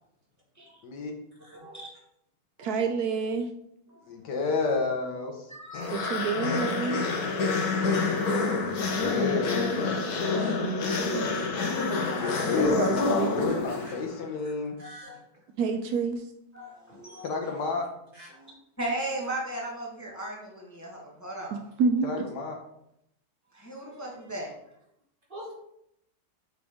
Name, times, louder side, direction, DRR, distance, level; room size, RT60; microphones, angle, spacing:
voice 1, 0.8-1.2 4.1-5.3 7.7-10.0 12.2-14.8 17.2-17.9 22.0-22.6, left 4 dB, 80° left, 3 dB, 1.7 m, -31 dB
voice 2, 1.5-1.9 2.6-2.8 4.2-4.5 5.5-6.1 7.3-7.7 10.5-10.6 11.5-12.4 14.8-15.2 16.5-17.3 18.3-21.6 23.5-24.5, right 1 dB, 10° left, -2 dB, 1.1 m, -37 dB
voice 3, 2.6-3.5 5.9-7.1 8.3-8.4 10.3-11.4 12.8-13.6 15.6-16.2 21.8-22.1, right 5 dB, 75° right, 6 dB, 1.0 m, -29 dB
sound 1, 5.7-14.2, left 4 dB, 65° left, 1.4 m, -28 dB
voice 4, 11.0-11.5 12.5-13.1 13.4-14.0 14.4-14.5 14.8-15.4 16.9-17.0 17.4-17.6 18.1-18.3 25.3-25.5, equal, 30° right, -5 dB, 2.4 m, -47 dB
7.5 x 4.8 x 3.6 m, 0.78 s
omnidirectional pair, 1.8 m